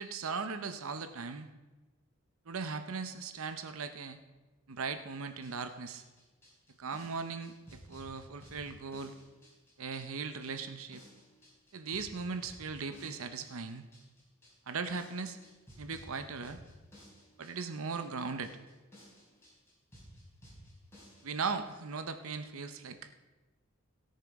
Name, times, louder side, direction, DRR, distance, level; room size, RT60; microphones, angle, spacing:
voice 1, 0.0-1.5 2.5-4.2 4.7-6.0 6.8-9.1 9.8-11.0 11.7-13.8 14.7-15.4 15.8-16.6 17.4-18.5 21.2-23.1, right 5 dB, 80° right, 9 dB, 0.8 m, -38 dB
sound 1, 5.3-21.7, equal, 10° left, 3.9 m, -56 dB
17.5 x 6.7 x 4.7 m, 1.2 s
head